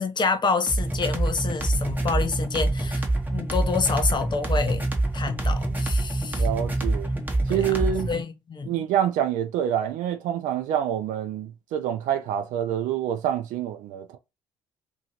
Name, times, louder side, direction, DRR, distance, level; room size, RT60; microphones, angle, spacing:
voice 1, 0.0-6.5 7.5-7.6 8.1-8.8, left 4 dB, 30° left, 0.6 m, -28 dB
sound 1, 0.7-8.2, right 2 dB, 10° right, 0.9 m, -26 dB
voice 2, 6.4-7.1 7.5-8.1 8.7-14.2, right 10 dB, 60° right, 0.5 m, -26 dB
2.7 x 2.7 x 2.8 m
hypercardioid pair, 50°, 15 cm